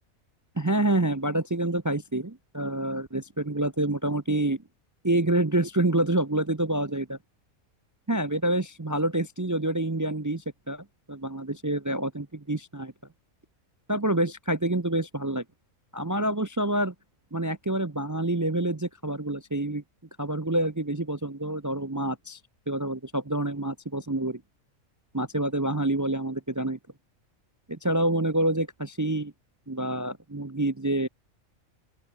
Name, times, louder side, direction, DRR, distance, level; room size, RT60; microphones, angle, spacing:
voice 1, 0.6-4.6 5.0-7.2 8.1-12.9 13.9-15.4 15.9-16.9 17.3-19.8 20.2-22.4 22.7-24.4 25.1-26.8 27.7-29.3 29.7-31.1, right 1 dB, 25° right, 0.4 m, -27 dB
open air
omnidirectional pair, 1.5 m